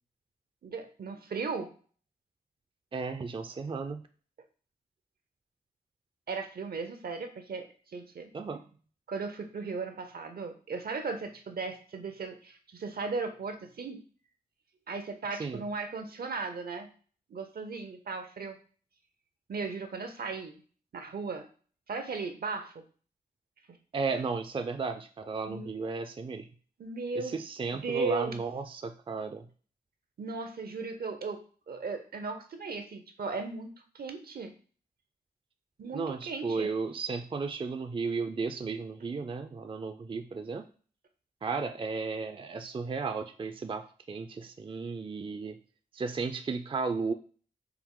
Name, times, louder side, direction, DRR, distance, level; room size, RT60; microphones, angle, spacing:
voice 1, 0.6-1.7 6.3-8.3 9.1-14.0 14.9-16.9 17.3-18.6 19.5-20.5 20.9-21.5 21.9-22.7 25.5-25.7 26.8-27.4 27.7-28.4 30.2-34.5 35.8-36.7, right 4 dB, 65° right, 7 dB, 0.6 m, -36 dB
voice 2, 2.9-4.0 8.3-8.6 15.4-15.6 23.9-26.5 27.2-29.4 35.9-40.6 41.4-45.6 45.9-47.1, right 4 dB, 30° right, 8 dB, 0.4 m, -34 dB
4.5 x 2.0 x 3.6 m, 0.41 s
cardioid pair, 50°, 17 cm